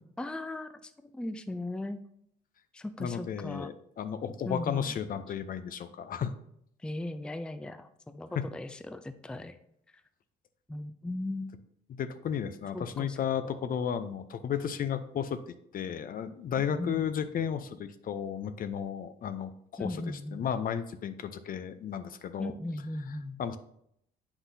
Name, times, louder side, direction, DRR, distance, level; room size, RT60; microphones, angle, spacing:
voice 1, 0.2-2.0 2.7-3.7 4.5-5.0 6.8-9.6 10.7-11.6 12.7-13.6 16.7-17.1 19.8-20.5 22.4-23.4, left 2 dB, 5° left, 11 dB, 0.4 m, -38 dB
voice 2, 3.0-6.3 8.4-8.5 11.9-15.4 15.7-19.5 19.8-20.0 20.3-22.5 23.4-23.6, left 8 dB, 50° left, 11 dB, 0.6 m, -33 dB
8.1 x 5.8 x 2.7 m, 0.73 s
supercardioid pair, 75°, 18 cm